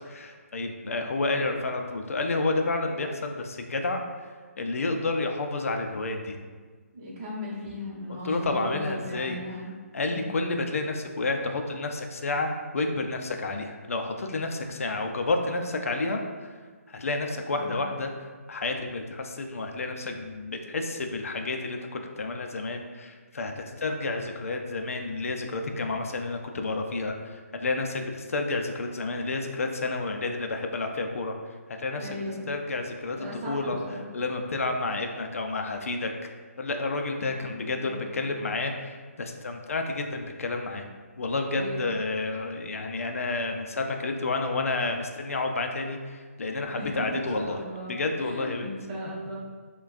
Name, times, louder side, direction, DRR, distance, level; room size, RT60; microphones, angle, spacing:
voice 1, 0.1-4.0 4.6-6.4 8.1-9.4 9.9-16.5 16.9-18.1 18.5-31.3 31.8-33.8 34.1-36.1 36.6-40.9 41.2-47.6 47.9-48.7, left 3 dB, 65° left, 4 dB, 0.4 m, -30 dB
voice 2, 6.9-9.7 10.1-10.4 17.6-17.8 32.0-32.5 33.1-34.1 37.4-37.9 38.3-38.5 41.5-41.9 46.6-47.0 47.3-49.4, equal, 25° right, -8 dB, 0.9 m, -37 dB
5.7 x 2.2 x 2.5 m, 1.5 s
hypercardioid pair, 175°, 8 cm